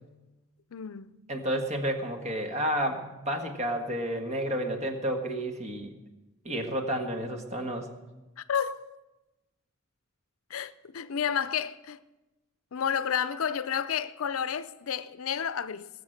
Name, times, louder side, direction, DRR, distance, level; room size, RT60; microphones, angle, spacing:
voice 1, 0.7-1.2 8.5-9.0 10.5-12.0 12.7-15.9, left 8 dB, 70° left, 0.5 m, -31 dB
voice 2, 1.3-5.9 6.4-7.9, equal, 30° right, 1.5 m, -31 dB
20.0 x 7.1 x 6.5 m
head